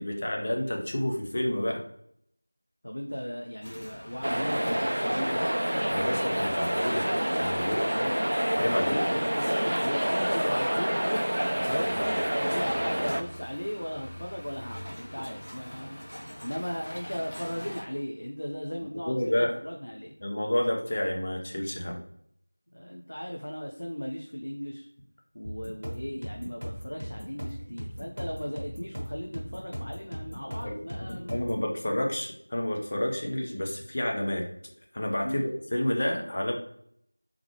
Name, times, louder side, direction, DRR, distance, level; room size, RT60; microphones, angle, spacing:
voice 1, 0.0-1.8 5.9-7.0 7.4-7.8 8.6-9.0 19.1-19.5 20.2-22.0 30.6-30.7 31.3-34.4 34.9-36.5, left 1 dB, 20° left, 0 dB, 0.4 m, -29 dB
voice 2, 2.8-5.5 7.8-8.4 8.7-16.1 16.4-20.1 22.7-24.9 25.3-31.3 35.2-35.5, equal, 65° left, 1 dB, 0.6 m, -36 dB
sound 1, 3.6-17.8, equal, 50° left, 1.1 m, -45 dB
sound 2, 4.2-13.2, equal, 70° right, 0.4 m, -27 dB
sound 3, 25.4-31.6, equal, 35° right, 1.2 m, -38 dB
3.6 x 3.5 x 3.0 m, 0.68 s
figure-of-eight pair, 180°, 0 cm